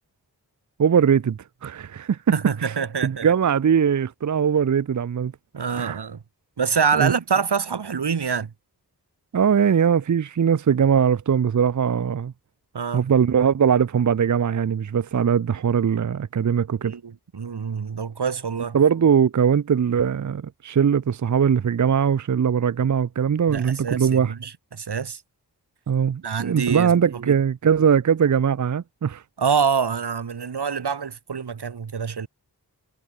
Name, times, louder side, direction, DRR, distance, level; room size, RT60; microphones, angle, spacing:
voice 1, 0.8-2.2 2.6-2.7 3.0-5.3 5.8-6.0 6.9-7.1 9.3-12.3 12.9-16.9 18.7-24.3 25.9-29.2, right 7 dB, 50° right, 0.6 m, -21 dB
voice 2, 2.3-3.3 5.5-6.2 6.6-8.5 12.7-13.0 16.8-18.8 23.5-25.2 26.2-26.9 27.2-27.3 29.4-32.3, right 6 dB, 90° right, 2.0 m, -26 dB
cardioid pair, 45°, 39 cm